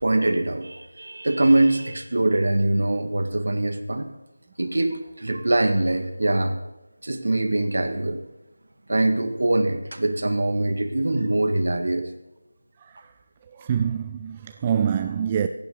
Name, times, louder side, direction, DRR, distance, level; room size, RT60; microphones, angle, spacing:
voice 1, 0.0-4.1 4.6-6.6 7.0-8.2 8.9-12.1, right 2 dB, 65° right, 1.8 m, -23 dB
voice 2, 13.5-15.5, right 8 dB, 20° right, 0.4 m, -25 dB
16.5 x 15.0 x 4.0 m
figure-of-eight pair, 170°, 0 cm